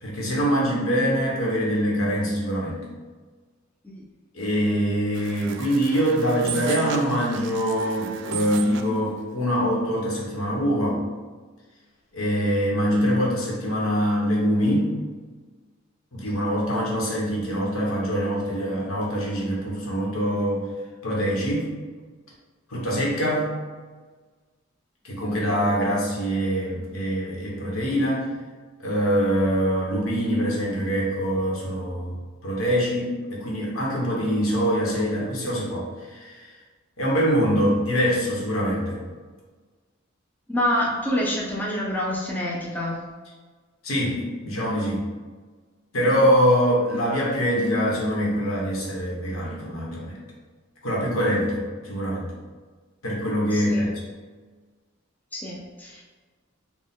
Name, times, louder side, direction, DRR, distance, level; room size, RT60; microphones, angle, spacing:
voice 1, 0.0-2.9 4.3-11.0 12.1-14.9 16.1-20.7 21.0-21.7 22.7-23.6 25.0-28.3 28.8-32.2 32.4-36.5 37.0-39.0 43.8-45.0 45.9-50.2 50.8-52.3 53.0-53.9, equal, 85° left, -4 dB, 1.1 m, -24 dB
sound 1, 5.1-9.0, right 7 dB, 60° right, 0.3 m, -35 dB
voice 2, 40.5-43.0 53.5-53.9 55.3-56.0, left 1 dB, 10° left, -4 dB, 0.5 m, -27 dB
4.5 x 2.3 x 3.6 m, 1.4 s
head